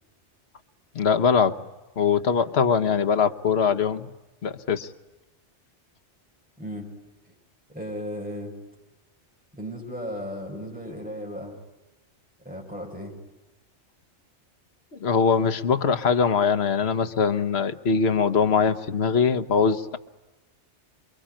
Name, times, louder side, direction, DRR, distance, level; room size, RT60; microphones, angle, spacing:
voice 1, 0.9-1.6 2.0-4.1 4.4-4.9 15.0-20.0, left 6 dB, 65° left, 8 dB, 1.3 m, -22 dB
voice 2, 6.6-6.9 7.2-7.3 7.7-8.5 9.5-11.5 12.4-13.2, equal, 5° right, 0 dB, 6.3 m, -35 dB
28.5 x 23.0 x 8.8 m, 1.0 s
omnidirectional pair, 1.2 m